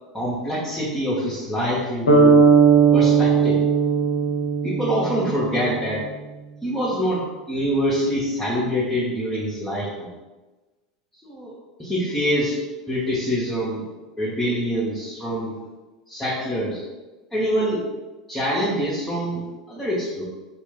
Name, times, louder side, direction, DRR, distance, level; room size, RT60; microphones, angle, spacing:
voice 1, 0.1-2.4 2.9-3.6 4.6-6.0 6.6-10.1 11.2-11.5 11.8-12.6 12.9-13.9 14.2-15.6 16.1-16.8 17.3-17.8 18.3-20.2, equal, 10° left, -8 dB, 0.8 m, -25 dB
sound 1, 2.1-6.0, right 5 dB, 80° left, 0.6 m, -17 dB
2.4 x 2.2 x 3.6 m, 1.2 s
figure-of-eight pair, 80°, 3 cm